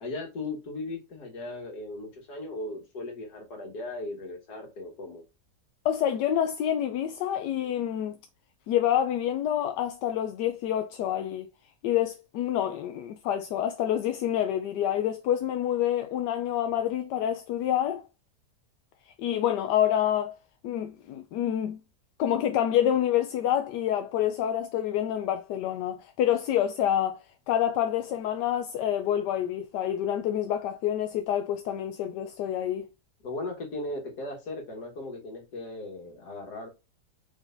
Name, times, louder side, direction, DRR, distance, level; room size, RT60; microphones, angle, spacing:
voice 1, 0.0-5.2 33.2-36.7, left 2 dB, 70° left, 2.1 m, -37 dB
voice 2, 5.8-8.2 8.7-11.5 11.8-18.0 19.1-20.4 20.6-21.8 22.2-27.2 27.5-32.9, left 10 dB, 85° left, 1.2 m, -27 dB
4.6 x 4.0 x 2.6 m
omnidirectional pair, 1.8 m